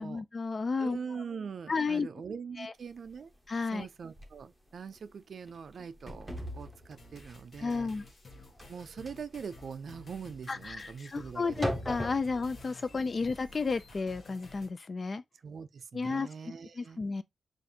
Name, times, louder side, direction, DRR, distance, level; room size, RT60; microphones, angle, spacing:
voice 1, 0.0-1.0 1.7-2.1 2.6-2.7 3.5-3.9 7.6-8.1 10.5-15.2 15.9-17.2, left 4 dB, 35° left, 0.3 m, -33 dB
voice 2, 0.8-3.3 3.7-7.9 8.7-11.7 12.9-13.0 15.4-17.0, right 6 dB, 60° right, 0.4 m, -43 dB
sound 1, 3.1-3.2 3.6-3.7 4.2-4.4 4.8-5.1 5.4-12.7, equal, 5° right, 0.9 m, -40 dB
sound 2, 7.0-14.7, left 2 dB, 50° left, 1.3 m, -52 dB
6.9 x 2.5 x 2.7 m
wide cardioid pair, 175°, 0 cm